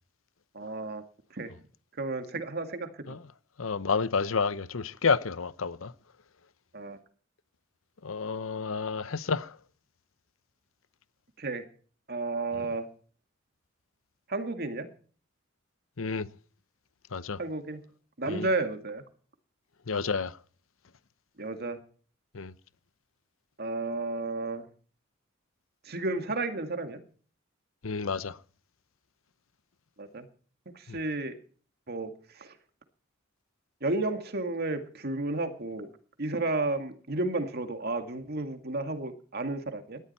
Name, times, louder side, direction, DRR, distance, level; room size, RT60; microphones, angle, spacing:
voice 1, 0.5-1.0 1.3-1.5 2.0-3.2 6.7-7.0 11.4-11.7 12.1-12.9 14.3-14.9 17.4-17.8 18.2-19.0 21.4-21.8 23.6-24.7 25.9-27.0 30.0-30.3 30.7-31.4 31.9-32.6 33.8-35.9 36.2-40.0, right 2 dB, 50° right, 2.1 m, -32 dB
voice 2, 3.6-5.9 8.0-9.6 16.0-16.3 17.1-17.4 18.3-18.5 19.9-20.4 22.3-22.5 27.8-28.4 30.9-31.0, left 5 dB, 80° left, 0.8 m, -30 dB
19.0 x 13.0 x 4.3 m
head